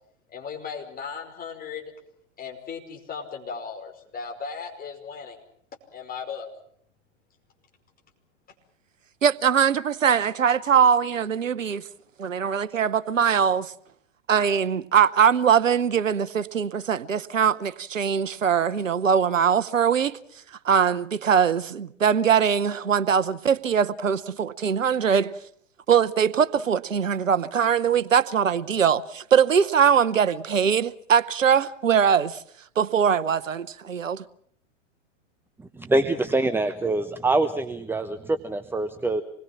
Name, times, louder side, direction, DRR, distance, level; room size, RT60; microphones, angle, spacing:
voice 1, 0.3-1.9 2.4-5.4 5.9-6.5, left 6 dB, 25° left, 5.1 m, -36 dB
voice 2, 9.2-11.8 12.2-13.7 14.3-20.2 20.6-25.3 25.9-32.4 32.8-34.2, right 7 dB, 90° right, 0.9 m, -22 dB
voice 3, 35.9-39.2, right 2 dB, 5° right, 1.0 m, -24 dB
26.5 x 21.0 x 7.4 m
hypercardioid pair, 105°, 37 cm